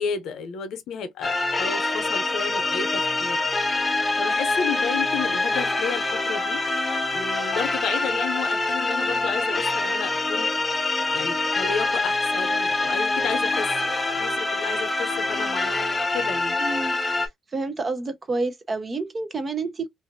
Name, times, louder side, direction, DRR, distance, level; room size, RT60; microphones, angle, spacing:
voice 1, 0.0-3.4 4.2-6.6 7.1-10.5 11.1-16.6, left 6 dB, 75° left, 0.7 m, -32 dB
sound 1, 1.2-17.3, left 2 dB, 15° left, 0.6 m, -25 dB
voice 2, 16.6-16.9 17.5-19.9, right 3 dB, 30° right, 0.7 m, -28 dB
2.6 x 2.5 x 2.6 m
cardioid pair, 105°, 0 cm